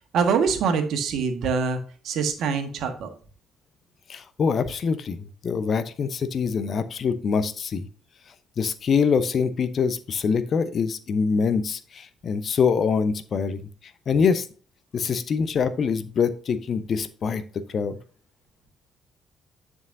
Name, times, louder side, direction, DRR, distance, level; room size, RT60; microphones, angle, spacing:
voice 1, 0.1-3.1, right 5 dB, 55° right, 6 dB, 1.6 m, -24 dB
voice 2, 4.1-7.9 8.6-13.6 14.1-14.4 14.9-18.0, left 6 dB, 45° left, 12 dB, 0.8 m, -24 dB
10.5 x 6.4 x 2.7 m, 0.40 s
figure-of-eight pair, 45°, 0 cm